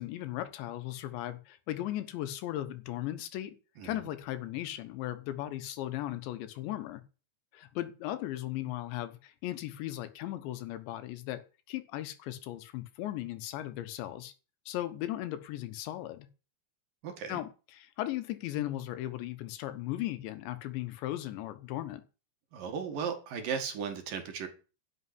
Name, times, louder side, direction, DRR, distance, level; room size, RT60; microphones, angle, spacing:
voice 1, 0.0-3.6 3.8-7.0 7.5-11.4 11.7-14.3 14.7-16.3 17.3-22.0, left 14 dB, 85° left, 12 dB, 3.4 m, -37 dB
voice 2, 17.0-17.4 22.5-24.5, right 6 dB, 60° right, 5 dB, 3.0 m, -36 dB
11.5 x 7.0 x 9.7 m, 0.34 s
omnidirectional pair, 5.1 m